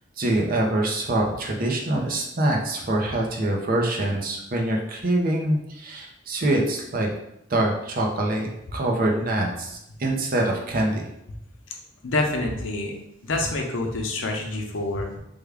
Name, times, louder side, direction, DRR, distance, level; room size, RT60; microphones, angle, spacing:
voice 1, 0.2-7.1 7.5-11.0, right 1 dB, 50° right, 0 dB, 0.6 m, -24 dB
voice 2, 12.0-12.9 13.2-15.2, left 2 dB, 85° left, 2 dB, 0.6 m, -27 dB
3.5 x 2.3 x 3.4 m, 0.82 s
head